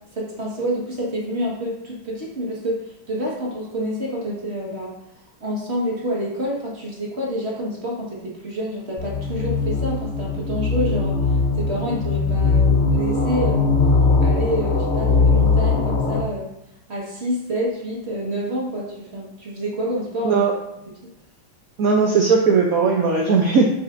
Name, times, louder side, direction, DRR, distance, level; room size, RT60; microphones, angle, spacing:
voice 1, 0.1-5.0 5.4-13.7 14.2-16.5 16.9-20.4 20.9-21.0, equal, 35° right, -4 dB, 1.5 m, -28 dB
sound 1, 9.0-16.2, left 4 dB, 60° left, 0.6 m, -20 dB
voice 2, 21.8-23.6, right 5 dB, 70° right, 1 dB, 0.8 m, -17 dB
8.4 x 5.7 x 2.5 m, 0.84 s
omnidirectional pair, 2.2 m